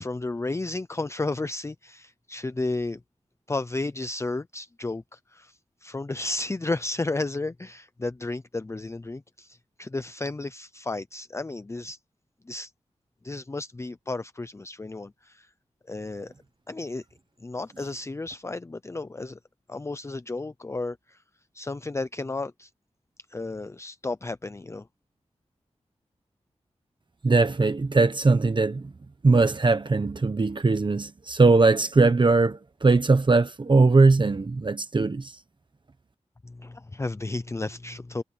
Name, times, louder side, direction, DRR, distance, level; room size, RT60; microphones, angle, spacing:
voice 1, 0.0-3.0 3.5-5.5 5.8-12.0 12.5-12.7 13.2-15.5 15.9-16.3 16.7-17.0 17.4-19.4 19.7-21.2 21.5-22.7 23.3-24.8 36.4-38.2, left 2 dB, 25° left, 0.5 m, -33 dB
voice 2, 27.2-28.8 29.2-35.3, right 3 dB, 45° right, 1.1 m, -20 dB
wide cardioid pair, 85°, 12 cm